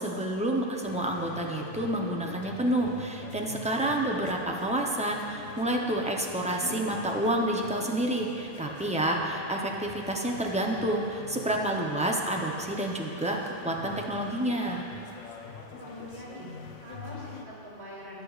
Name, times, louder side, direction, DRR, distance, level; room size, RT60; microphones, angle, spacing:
voice 1, 0.0-14.8, right 1 dB, 10° right, 0 dB, 0.4 m, -29 dB
sound 1, 0.8-17.4, left 5 dB, 90° left, 1.0 m, -44 dB
voice 2, 15.8-16.5 16.8-18.2, equal, 65° right, -6 dB, 2.6 m, -43 dB
17.0 x 6.8 x 2.4 m, 2.7 s
omnidirectional pair, 1.2 m